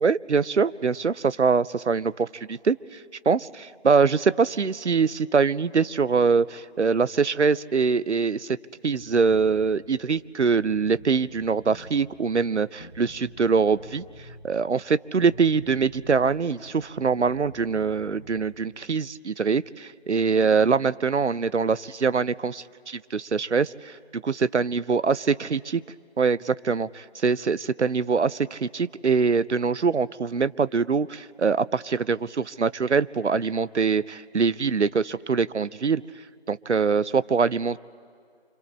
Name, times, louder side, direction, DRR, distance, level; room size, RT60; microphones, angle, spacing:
voice 1, 0.0-3.0 3.3-8.6 8.8-14.0 14.4-25.8 26.2-36.0 36.5-37.8, right 5 dB, 85° right, 18 dB, 0.6 m, -23 dB
Bass guitar, 8.9-9.5 10.0-10.1 10.4-12.0 12.8-14.4 15.2-16.3 16.6-18.5, equal, 15° right, 3.9 m, -46 dB
29.0 x 26.0 x 4.3 m, 2.3 s
figure-of-eight pair, 175°, 34 cm